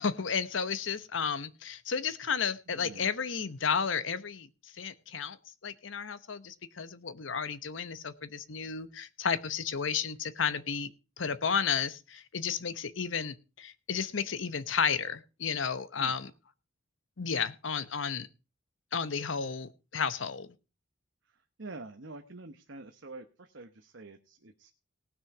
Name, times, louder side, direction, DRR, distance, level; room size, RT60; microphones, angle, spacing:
voice 1, 0.0-4.5 4.8-5.4 5.6-10.9 11.2-16.3 17.2-18.3 18.9-20.5, left 6 dB, 80° left, 14 dB, 0.9 m, -32 dB
voice 2, 2.7-3.1 16.0-16.2 21.6-24.7, right 2 dB, 70° right, 6 dB, 1.0 m, -47 dB
18.5 x 6.3 x 4.8 m, 0.32 s
head